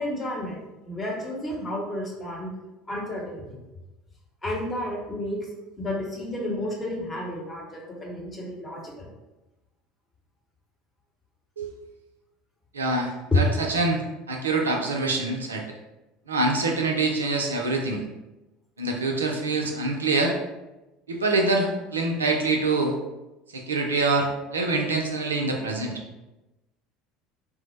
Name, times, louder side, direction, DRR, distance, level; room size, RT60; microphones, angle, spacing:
voice 1, 0.0-2.5 2.9-3.6 4.4-5.4 5.8-9.1, left 1 dB, 20° left, -2 dB, 0.9 m, -32 dB
voice 2, 12.7-14.0 14.3-15.6 16.3-18.0 18.8-20.3 21.1-22.9 23.5-25.9, right 3 dB, 80° right, 2 dB, 0.4 m, -25 dB
3.2 x 2.0 x 3.1 m, 1.0 s
figure-of-eight pair, 65°, 0 cm